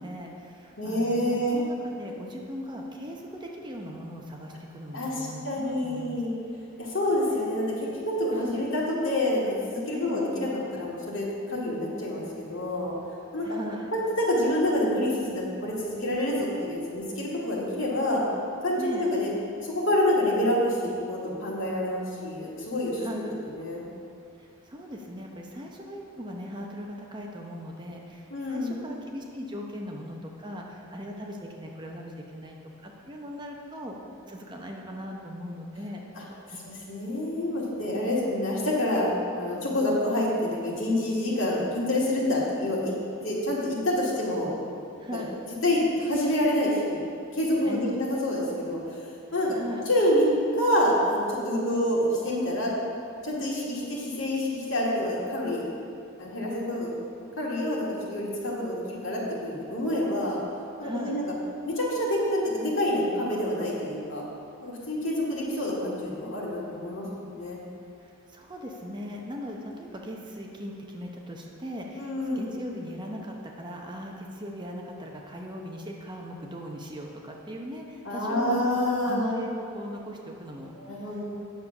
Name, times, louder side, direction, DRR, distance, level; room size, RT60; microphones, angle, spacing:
voice 1, 0.0-6.2 8.3-8.6 9.9-10.2 13.4-13.9 18.8-19.1 23.0-23.4 24.4-34.0 34.3-36.0 36.8-36.9 45.0-45.4 47.6-48.0 49.5-49.9 60.8-61.2 68.0-78.7 79.0-81.2, equal, 20° right, 0 dB, 0.8 m, -39 dB
voice 2, 0.8-1.6 4.9-6.3 6.8-12.9 13.3-13.6 13.9-18.2 18.6-19.3 19.6-23.2 23.5-23.8 28.3-28.7 36.2-36.3 36.9-43.0 43.2-44.6 45.1-45.2 45.6-47.0 47.3-48.8 49.3-49.6 49.9-50.2 50.6-52.7 53.2-55.6 56.2-56.9 57.4-60.4 60.8-61.2 61.6-64.2 64.6-67.6 72.0-72.4 78.0-79.3 80.8-81.2, left 1 dB, 65° left, -5 dB, 2.4 m, -27 dB
9.1 x 7.0 x 6.0 m, 2.5 s
head